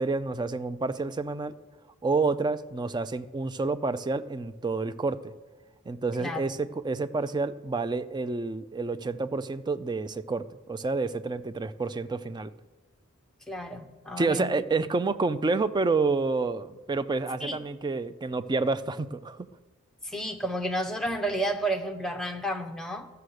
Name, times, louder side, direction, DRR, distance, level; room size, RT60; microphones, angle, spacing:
voice 1, 0.0-1.5 2.0-5.3 5.9-12.5 14.2-19.5, right 3 dB, 20° right, 0.3 m, -29 dB
voice 2, 6.2-6.5 13.5-14.5 17.4-17.6 20.0-23.1, right 1 dB, ahead, 0.8 m, -31 dB
14.5 x 6.8 x 6.4 m
head